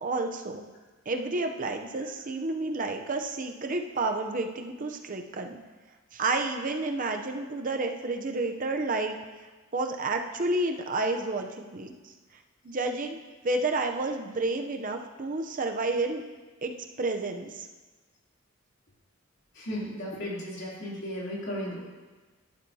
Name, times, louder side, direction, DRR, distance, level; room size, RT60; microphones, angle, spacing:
voice 1, 0.0-0.6 1.1-5.6 6.1-9.2 9.7-12.1 12.6-13.2 13.4-16.2 16.6-17.7, right 2 dB, 40° right, 5 dB, 0.6 m, -30 dB
voice 2, 19.5-21.8, equal, 55° left, -5 dB, 3.0 m, -35 dB
11.5 x 11.5 x 2.8 m, 1.3 s
head